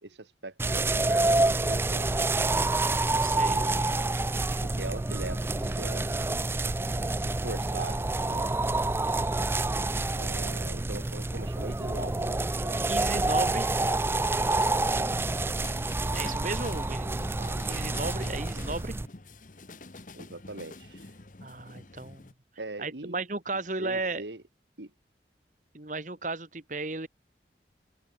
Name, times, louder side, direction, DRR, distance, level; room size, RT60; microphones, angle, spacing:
voice 1, 0.0-2.6 3.3-4.0 4.6-6.1 7.1-8.5 10.2-12.8 20.1-21.1 22.6-23.2 23.8-24.4 24.8-24.9, right 2 dB, 80° right, 1.9 m, -41 dB
sound 1, 0.6-19.1, right 2 dB, 15° right, 0.3 m, -28 dB
voice 2, 3.2-3.6 12.9-13.7 16.1-18.9 21.4-22.3 22.8-24.2 25.7-27.1, right 3 dB, 45° right, 1.9 m, -35 dB
sound 2, 14.4-22.3, left 3 dB, 45° left, 1.2 m, -47 dB
open air
head